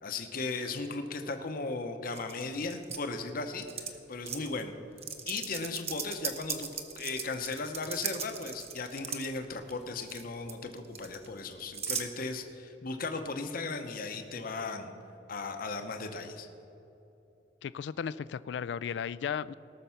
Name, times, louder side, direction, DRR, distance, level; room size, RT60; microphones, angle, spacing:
voice 1, 0.0-4.7 5.3-14.9 15.3-16.5, left 3 dB, 50° left, 6 dB, 0.8 m, -37 dB
sound 1, 2.1-3.0 3.6-3.9 4.3-4.5 5.0-9.3 9.7-10.2 10.5-12.1, right 7 dB, 35° right, 0.9 m, -37 dB
voice 2, 17.6-19.5, left 7 dB, 70° left, 18 dB, 0.3 m, -35 dB
18.0 x 6.6 x 5.7 m, 3.0 s
head